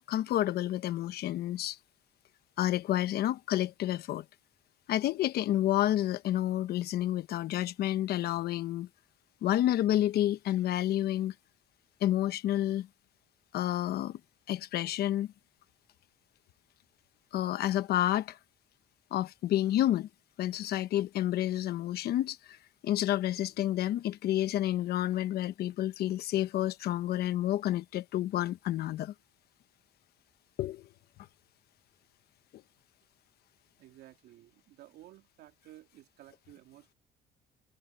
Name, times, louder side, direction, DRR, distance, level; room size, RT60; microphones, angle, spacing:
voice 1, 0.0-1.8 2.6-4.2 4.9-8.9 9.4-11.3 12.0-12.9 13.5-14.2 14.5-15.3 17.3-18.4 19.1-20.1 20.4-22.6 22.8-29.1 30.6-30.9, left 13 dB, 70° left, 1.1 m, -29 dB
voice 2, 33.8-36.9, right 14 dB, 80° right, 3.4 m, -54 dB
cardioid pair, 110°, 17 cm